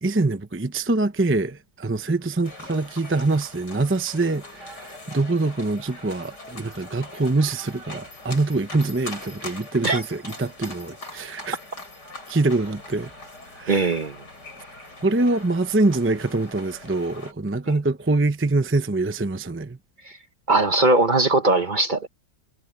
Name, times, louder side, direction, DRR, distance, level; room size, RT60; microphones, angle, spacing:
voice 1, 0.0-11.6 12.3-13.1 13.6-13.9 15.0-19.8, right 2 dB, 15° right, 0.4 m, -24 dB
sound 1, 2.4-17.3, left 2 dB, 80° left, 8.7 m, -41 dB
voice 2, 13.7-14.2 20.1-20.2 20.5-22.1, right 2 dB, 40° right, 0.8 m, -20 dB
omnidirectional pair, 1.8 m